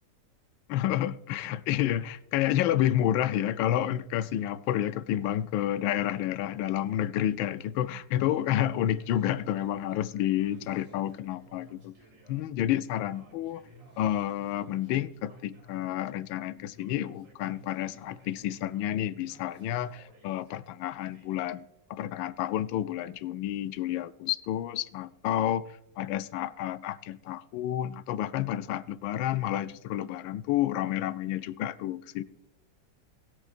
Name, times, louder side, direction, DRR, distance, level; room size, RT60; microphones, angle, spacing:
voice 1, 0.7-11.9 12.3-13.6 14.0-32.2, left 12 dB, 85° left, 1.3 m, -30 dB
sound 1, 8.4-20.0, equal, 5° right, 4.0 m, -58 dB
Yell, 8.6-12.4 12.9-15.8 16.7-18.4 18.7-21.6, right 2 dB, 70° right, 3.3 m, -62 dB
21.0 x 8.1 x 2.5 m
omnidirectional pair, 2.1 m